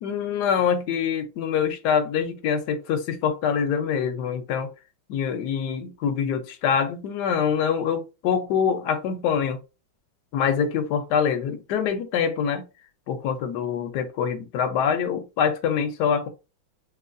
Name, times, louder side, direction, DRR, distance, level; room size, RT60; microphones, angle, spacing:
voice 1, 0.0-4.7 5.1-9.6 10.3-12.6 13.1-16.3, left 7 dB, 70° left, 1.0 m, -25 dB
3.0 x 2.9 x 2.5 m
omnidirectional pair, 2.2 m